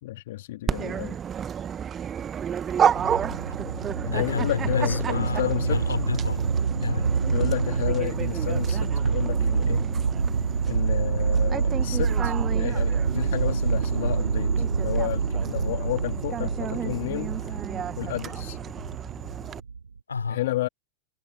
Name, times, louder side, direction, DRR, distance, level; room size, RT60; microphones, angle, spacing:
voice 1, 0.0-1.2 4.2-5.8 7.2-9.9 10.6-14.5 14.8-17.6 18.0-18.6 20.3-20.7, left 16 dB, 55° left, 3.1 m, -31 dB
Dog, 0.7-19.6, right 8 dB, 25° right, 1.4 m, -32 dB
sound 1, 3.0-20.0, right 5 dB, 75° right, 1.3 m, -27 dB
voice 2, 4.0-7.1 20.1-20.4, left 5 dB, 75° left, 4.4 m, -30 dB
figure-of-eight pair, 90°, 0 cm